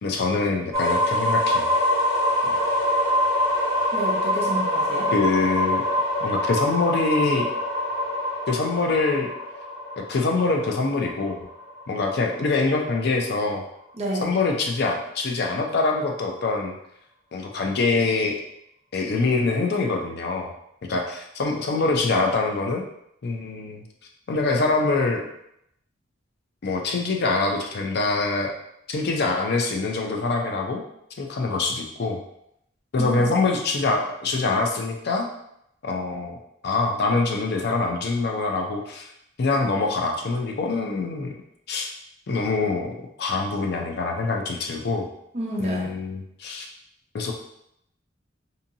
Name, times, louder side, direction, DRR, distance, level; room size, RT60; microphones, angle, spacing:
voice 1, 0.0-1.7 5.1-5.9 6.2-7.5 8.5-9.3 10.0-11.5 11.9-13.6 14.2-16.8 17.3-18.4 18.9-20.5 20.9-22.8 23.2-23.8 24.3-25.3 26.6-28.5 28.9-30.8 31.2-32.2 32.9-35.3 35.8-36.4 36.6-39.1 39.4-41.3 41.7-41.9 42.3-45.1 45.6-46.7 47.1-47.3, left 3 dB, 55° left, 2 dB, 0.4 m, -24 dB
sound 1, 0.7-12.5, left 1 dB, 15° left, 1.3 m, -25 dB
voice 2, 3.9-5.1 14.0-14.3 33.0-33.2 45.3-45.9, right 1 dB, 35° right, -2 dB, 0.6 m, -30 dB
2.7 x 2.7 x 2.6 m, 0.77 s
head